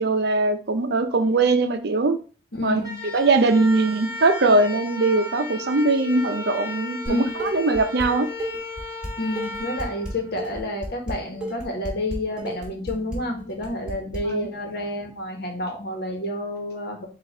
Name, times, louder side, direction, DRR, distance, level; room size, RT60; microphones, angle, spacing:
voice 1, 0.0-2.2 2.6-2.8 3.1-8.3 14.3-14.5, right 3 dB, 60° right, 8 dB, 0.6 m, -21 dB
voice 2, 2.5-3.1 7.0-7.3 9.2-17.1, left 1 dB, 60° left, 3 dB, 1.2 m, -29 dB
sound 1, 2.7-10.9, left 2 dB, 20° right, 1.7 m, -35 dB
Dishes pots and pans, 7.1-8.1 8.4-14.2, right 1 dB, 5° right, 1.7 m, -33 dB
4.5 x 2.5 x 4.4 m, 0.37 s
head